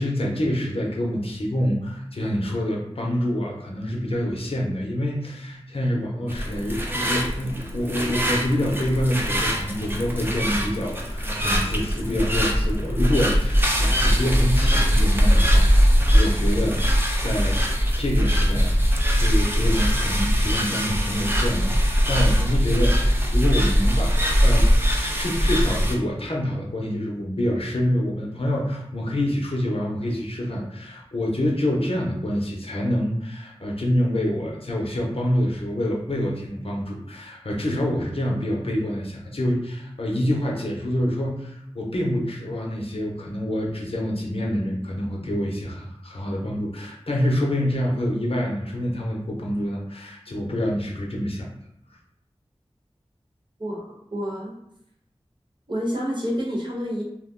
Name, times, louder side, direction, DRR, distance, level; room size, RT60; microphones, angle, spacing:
voice 1, 0.0-51.5, equal, 60° left, -2 dB, 0.7 m, -26 dB
sound 1, 6.3-25.9, equal, 20° right, 0.5 m, -21 dB
voice 2, 53.6-54.5 55.7-57.0, equal, 45° right, -4 dB, 1.0 m, -28 dB
2.5 x 2.1 x 3.6 m, 0.76 s
wide cardioid pair, 40°, 11 cm